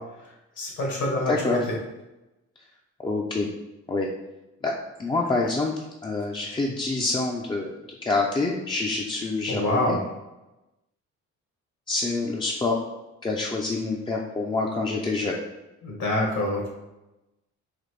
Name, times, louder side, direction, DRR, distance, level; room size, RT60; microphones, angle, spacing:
voice 1, 0.0-1.8 9.5-10.0 15.8-16.7, left 1 dB, 70° left, -1 dB, 1.4 m, -26 dB
voice 2, 1.3-1.6 3.0-3.5 3.9-4.1 4.6-4.7 5.0-5.7 6.0-10.0 11.9-12.8 13.2-15.4, left 3 dB, 15° left, -2 dB, 0.4 m, -26 dB
4.1 x 2.6 x 3.2 m, 0.98 s
cardioid pair, 90°, 30 cm